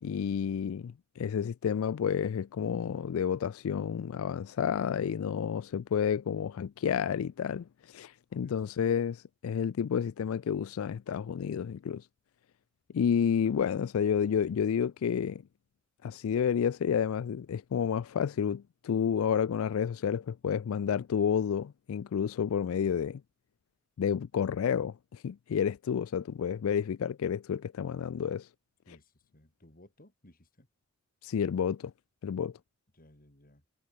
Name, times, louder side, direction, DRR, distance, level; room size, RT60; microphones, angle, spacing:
voice 1, 0.0-12.1 12.9-15.4 16.0-23.2 24.0-28.5 31.2-31.9 32.2-32.5, left 7 dB, 90° left, 0.4 m, -30 dB
voice 2, 28.9-30.7 32.9-33.6, left 1 dB, 45° left, 3.6 m, -59 dB
head